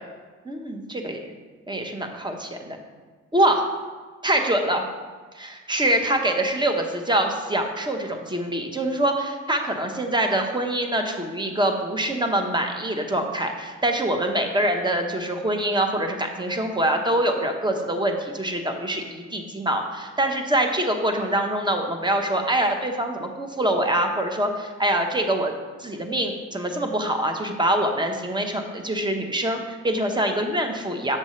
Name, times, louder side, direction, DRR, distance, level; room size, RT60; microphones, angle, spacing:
voice 1, 0.5-1.2 1.7-2.8 3.3-3.6 4.2-4.8 5.3-25.5 25.8-31.2, right 1 dB, 15° right, 4 dB, 0.9 m, -24 dB
7.0 x 6.6 x 3.1 m, 1.4 s
cardioid pair, 90°, 30 cm